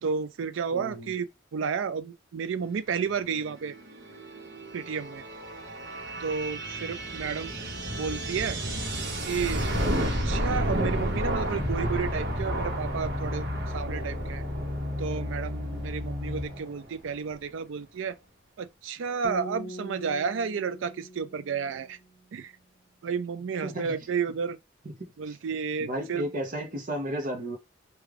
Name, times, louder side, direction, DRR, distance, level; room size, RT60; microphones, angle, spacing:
voice 1, 0.0-3.8 4.7-5.2 6.2-7.5 8.0-8.6 9.2-9.7 10.0-13.5 13.7-14.4 15.0-18.1 18.6-22.0 22.3-22.5 23.0-24.6 25.2-26.3, right 6 dB, 80° right, 0.4 m, -32 dB
voice 2, 0.7-1.1 23.6-23.9 25.3-25.4 25.8-27.6, right 1 dB, 40° right, 0.6 m, -33 dB
sound 1, 3.3-16.8, right 1 dB, 60° right, 1.0 m, -32 dB
sound 2, 11.6-16.7 17.3-17.4, left 1 dB, 10° left, 0.5 m, -34 dB
sound 3, 19.2-22.4, equal, 60° left, 0.7 m, -42 dB
3.5 x 2.3 x 3.3 m
head